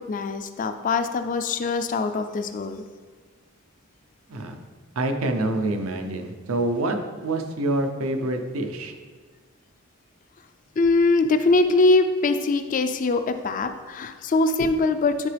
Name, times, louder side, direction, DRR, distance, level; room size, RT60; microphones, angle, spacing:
voice 1, 0.0-2.8 10.8-15.3, left 3 dB, 40° left, 9 dB, 0.4 m, -22 dB
voice 2, 5.0-8.9, right 2 dB, 90° right, 5 dB, 0.7 m, -26 dB
9.7 x 3.8 x 3.4 m, 1.4 s
head